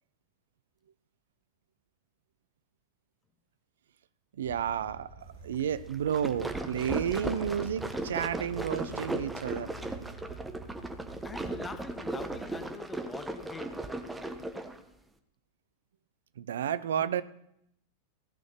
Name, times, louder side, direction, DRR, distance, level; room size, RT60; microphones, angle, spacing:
voice 1, 4.4-9.7 16.4-17.2, right 9 dB, 60° right, 0.6 m, -31 dB
sound 1, 4.4-12.6, right 3 dB, 85° right, 4.3 m, -47 dB
sound 2, 5.9-14.8, right 2 dB, 5° right, 1.2 m, -37 dB
voice 2, 11.2-14.1, left 4 dB, 15° left, 1.0 m, -45 dB
15.5 x 6.4 x 8.6 m
figure-of-eight pair, 90°, 0 cm